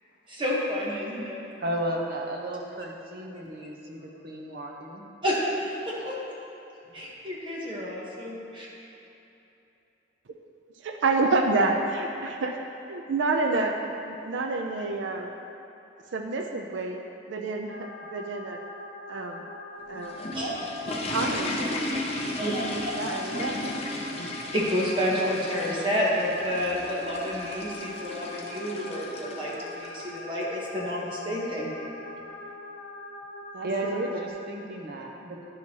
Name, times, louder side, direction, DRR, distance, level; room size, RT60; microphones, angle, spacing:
voice 1, 0.3-1.4 5.2-6.1 6.9-8.7 20.3-21.1 22.4-23.3 24.5-31.7, equal, 25° right, -5 dB, 1.1 m, -30 dB
voice 2, 1.6-5.0 33.6-35.5, right 1 dB, 50° right, 0 dB, 0.8 m, -34 dB
voice 3, 10.8-12.6 12.9-13.8 14.0-15.3 16.1-17.0 17.3-18.6 19.1-19.5 19.9-20.2 21.1-21.9 22.9-23.9 33.5-34.1, right 3 dB, 70° right, 3 dB, 0.4 m, -28 dB
sound 1, 17.7-34.3, left 2 dB, 70° left, 0.8 m, -42 dB
sound 2, 19.8-30.1, left 2 dB, 30° left, 0.6 m, -35 dB
10.0 x 6.1 x 2.9 m, 2.9 s
head